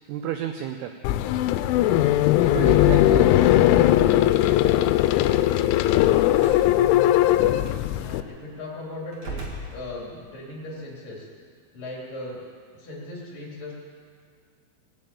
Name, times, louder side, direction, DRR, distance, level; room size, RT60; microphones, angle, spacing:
voice 1, 0.1-0.9 2.4-3.6, right 10 dB, 90° right, 6 dB, 2.3 m, -31 dB
sound 1, 1.0-8.2, left 13 dB, 85° left, 3.0 m, -19 dB
Slam, 6.3-6.7 7.6-7.8 9.1-10.4, right 2 dB, 50° right, 2.1 m, -37 dB
voice 2, 7.9-11.3 11.7-12.4 12.8-13.7, left 2 dB, 50° left, -3 dB, 4.3 m, -38 dB
19.0 x 8.3 x 8.5 m, 2.1 s
omnidirectional pair, 5.5 m